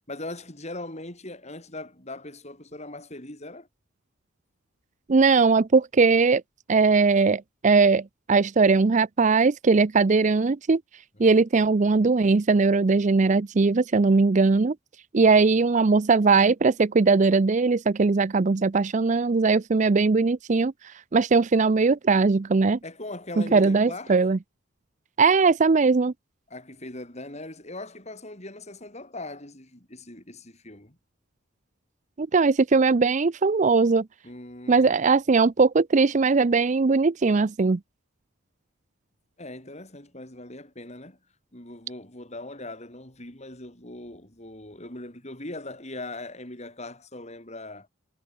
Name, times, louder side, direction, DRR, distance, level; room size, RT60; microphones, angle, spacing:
voice 1, 0.1-3.7 11.3-11.4 22.8-24.2 26.5-31.0 34.2-35.0 39.4-41.2 41.5-47.9, left 2 dB, 35° left, 6.4 m, -40 dB
voice 2, 5.1-6.4 6.7-8.0 8.3-10.8 11.2-14.7 15.1-20.7 21.1-22.8 23.5-24.4 25.2-26.1 32.2-34.1 34.7-37.8, right 4 dB, 35° right, 0.5 m, -20 dB
head